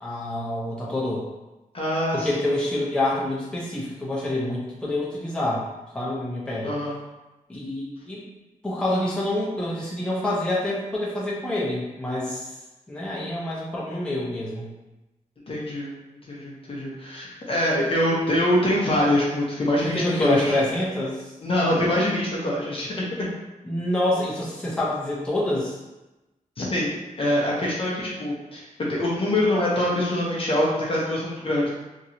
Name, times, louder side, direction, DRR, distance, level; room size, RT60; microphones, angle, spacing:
voice 1, 0.0-1.2 2.1-5.6 5.9-6.7 7.5-8.2 8.6-12.5 12.9-14.7 19.8-21.3 23.6-25.8, left 1 dB, 5° left, -7 dB, 0.8 m, -27 dB
voice 2, 1.7-2.4 6.6-7.0 15.5-15.9 16.3-20.6 21.4-23.3 26.6-31.7, left 1 dB, 45° left, -5 dB, 0.8 m, -24 dB
3.0 x 2.8 x 2.7 m, 1.0 s
wide cardioid pair, 120°, 14 cm